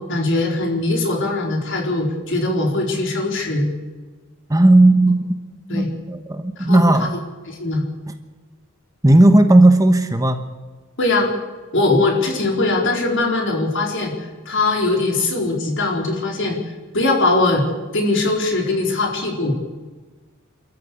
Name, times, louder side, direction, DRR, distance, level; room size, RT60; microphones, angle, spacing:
voice 1, 0.1-3.7 5.7-5.9 6.7-6.8 7.5-7.8 11.0-11.3 11.7-14.1 14.5-16.6 16.9-17.7 17.9-19.5, left 2 dB, 60° left, 1 dB, 4.3 m, -20 dB
voice 2, 4.5-5.3 5.7-7.2 9.0-10.6, right 1 dB, 15° right, 7 dB, 1.1 m, -14 dB
25.5 x 14.0 x 8.5 m, 1.3 s
head